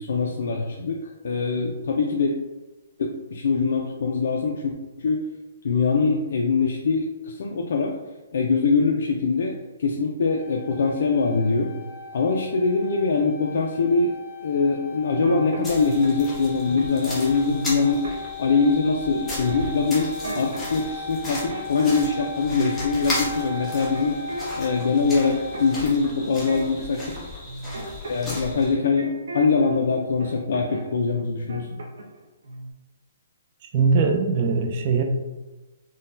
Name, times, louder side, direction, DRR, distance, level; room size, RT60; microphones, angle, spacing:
voice 1, 0.0-2.3 3.0-5.2 5.6-8.0 8.3-11.7 12.1-14.1 14.4-18.0 18.4-24.2 24.5-27.1 28.1-31.7, left 4 dB, 65° left, 0 dB, 0.3 m, -23 dB
sound 1, 10.4-25.7, left 4 dB, 35° left, 1.4 m, -38 dB
sound 2, 15.1-16.2 16.8-17.1 17.4-18.7 19.3-20.8 21.2-22.2 22.4-24.7 24.9-29.8 30.2-30.9 31.2-32.2 32.4-32.7, right 2 dB, 80° right, 0.7 m, -36 dB
sound 3, 15.6-28.7, left 1 dB, 5° left, 0.8 m, -36 dB
voice 2, 33.7-35.0, right 4 dB, 35° right, 4 dB, 0.4 m, -21 dB
3.8 x 2.1 x 2.6 m, 1.1 s
hypercardioid pair, 165°, 0 cm